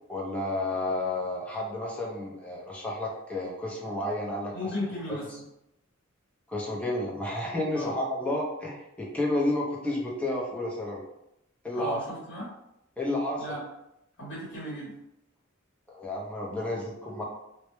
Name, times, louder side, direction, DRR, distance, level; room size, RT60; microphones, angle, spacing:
voice 1, 0.1-4.5 5.1-5.2 6.5-11.0 11.6-12.0 13.0-13.4 15.9-17.2, left 1 dB, 5° left, -4 dB, 0.4 m, -31 dB
voice 2, 4.5-5.4 7.7-7.9 11.7-12.5 13.4-13.6 14.2-15.0, left 1 dB, 55° left, -8 dB, 0.9 m, -36 dB
2.1 x 2.0 x 3.0 m, 0.84 s
head